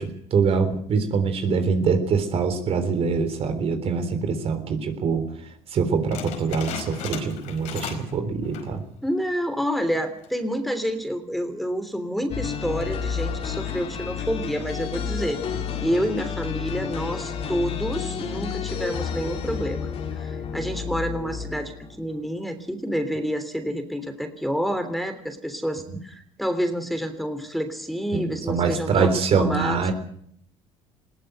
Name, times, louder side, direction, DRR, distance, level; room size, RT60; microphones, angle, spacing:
voice 1, 0.0-5.2 5.7-8.8 28.1-29.9, right 5 dB, 50° right, 8 dB, 3.7 m, -24 dB
sound 1, 6.1-8.2 8.4-8.8 9.3-9.4 10.1-10.4, left 7 dB, 75° left, 5.0 m, -35 dB
voice 2, 9.0-15.4 15.8-19.9 20.2-29.8, equal, ahead, 7 dB, 3.1 m, -28 dB
sound 2, 12.3-22.1, left 7 dB, 55° left, 3.2 m, -31 dB
20.5 x 17.0 x 7.9 m, 0.67 s
supercardioid pair, 90°, 12 cm